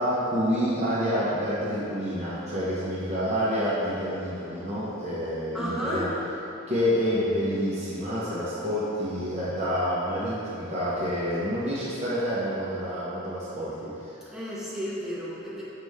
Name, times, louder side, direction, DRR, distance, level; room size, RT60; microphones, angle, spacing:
voice 1, 0.0-6.2 6.7-14.1, equal, 30° right, -9 dB, 1.0 m, -28 dB
voice 2, 5.5-6.1 14.3-15.6, equal, 5° right, -11 dB, 1.2 m, -33 dB
6.6 x 4.9 x 3.6 m, 2.8 s
head